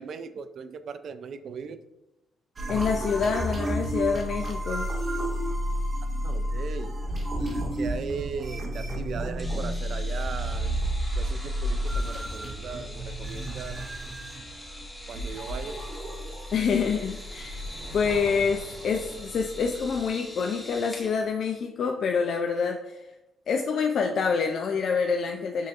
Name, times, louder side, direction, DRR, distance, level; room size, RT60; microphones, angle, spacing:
voice 1, 0.0-1.8 6.2-7.0 7.4-10.8 11.2-13.8 15.1-15.8, right 5 dB, 60° right, 11 dB, 0.3 m, -38 dB
sound 1, 2.6-20.1, equal, 35° right, 0.7 m, -32 dB
voice 2, 2.7-4.9 16.5-17.6 17.9-23.1 23.5-25.7, left 5 dB, 60° left, 3 dB, 0.3 m, -27 dB
sound 2, 9.4-21.1, left 1 dB, 10° left, 1.0 m, -44 dB
sound 3, 15.1-21.4, right 1 dB, 85° right, 0.9 m, -47 dB
6.2 x 2.7 x 2.4 m, 0.95 s
cardioid pair, 90°, 0 cm